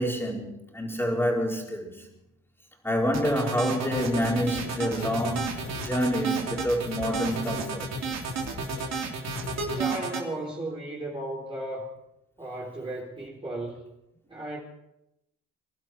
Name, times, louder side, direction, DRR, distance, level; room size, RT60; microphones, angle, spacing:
voice 1, 0.0-2.1 2.8-7.9, equal, 10° left, 4.6 m, -28 dB
sound 1, 3.1-10.2, right 4 dB, 60° right, 3.3 m, -31 dB
sound 2, 4.0-9.8, left 4 dB, 60° left, 3.4 m, -42 dB
voice 2, 9.7-11.9 12.4-13.9 14.3-14.6, right 1 dB, 15° right, 3.9 m, -35 dB
24.0 x 11.5 x 4.5 m
cardioid pair, 90°, 30 cm